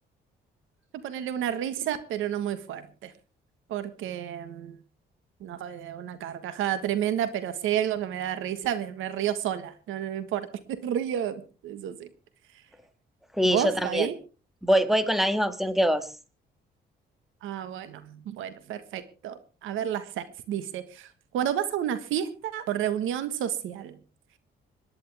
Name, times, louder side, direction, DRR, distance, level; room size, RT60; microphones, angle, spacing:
voice 1, 1.0-3.1 3.7-4.8 5.4-12.1 13.4-14.2 17.4-21.1 21.3-24.0, right 10 dB, 90° right, 12 dB, 1.5 m, -31 dB
voice 2, 13.4-14.1 14.6-16.1, equal, ahead, 10 dB, 1.8 m, -23 dB
26.0 x 11.0 x 3.5 m, 0.35 s
cardioid pair, 90°, 20 cm